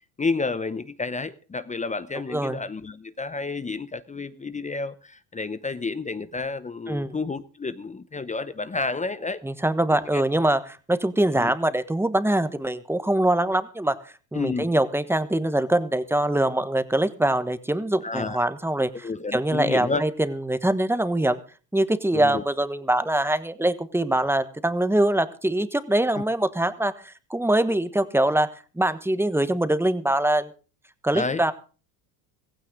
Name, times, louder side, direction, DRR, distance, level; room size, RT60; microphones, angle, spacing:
voice 1, 0.2-9.4 9.9-10.2 11.3-11.5 14.3-14.7 18.0-18.5 19.0-20.0 22.1-22.4 26.1-26.2 31.1-31.4, left 4 dB, 15° left, 0.7 m, -30 dB
voice 2, 9.4-10.6 10.9-13.9 14.3-21.4 21.7-28.5 28.7-30.5 31.0-31.5, right 1 dB, 5° right, 1.3 m, -23 dB
16.0 x 15.5 x 3.8 m
supercardioid pair, 100°, 50 cm